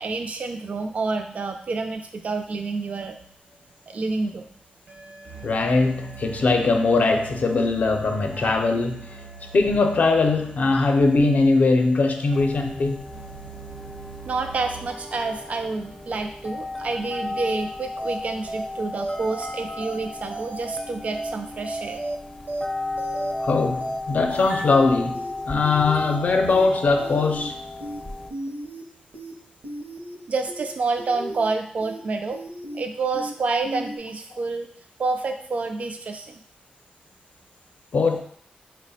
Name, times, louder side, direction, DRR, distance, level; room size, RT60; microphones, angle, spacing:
voice 1, 0.0-3.2 3.9-4.5 8.3-8.5 14.2-22.0 30.3-32.4 32.7-34.7 35.0-36.4, right 3 dB, 50° right, 5 dB, 0.3 m, -28 dB
sound 1, 3.2-3.3 4.9-14.9, right 6 dB, 85° right, 1.0 m, -43 dB
voice 2, 5.4-9.2 9.5-13.0 23.4-27.6 37.9-38.2, left 3 dB, 60° left, 5 dB, 0.5 m, -21 dB
sound 2, 12.3-28.3, left 2 dB, 15° left, 0.5 m, -35 dB
sound 3, 18.0-18.2 18.5-18.7 19.0-19.5 19.8-20.0 20.3-20.8 21.1-21.3 21.6-22.2 22.5-22.7 23.0-23.5 23.8-24.0 24.3-24.8 25.1-25.3 25.6-26.2 26.5-26.7 27.0-27.5 27.8-28.0 28.3-28.8 29.1-29.3 29.6-30.2 30.5-30.7 31.0-31.5 31.8-32.0 32.3-32.8 33.1-33.3 33.6-34.0, right 1 dB, 70° right, 0.7 m, -34 dB
4.7 x 2.1 x 4.0 m, 0.63 s
wide cardioid pair, 100°, 3 cm